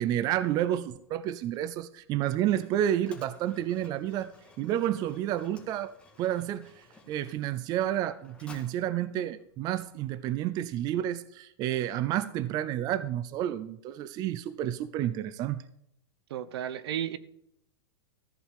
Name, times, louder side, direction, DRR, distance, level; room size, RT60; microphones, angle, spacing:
voice 1, 0.0-4.3 4.6-15.6, right 12 dB, 30° right, 15 dB, 0.4 m, -30 dB
Mechanisms, 0.7-10.4, left 3 dB, 10° left, 1.8 m, -57 dB
voice 2, 16.3-17.2, right 10 dB, 70° right, 15 dB, 1.0 m, -33 dB
14.0 x 5.0 x 7.4 m, 0.74 s
supercardioid pair, 145°, 14 cm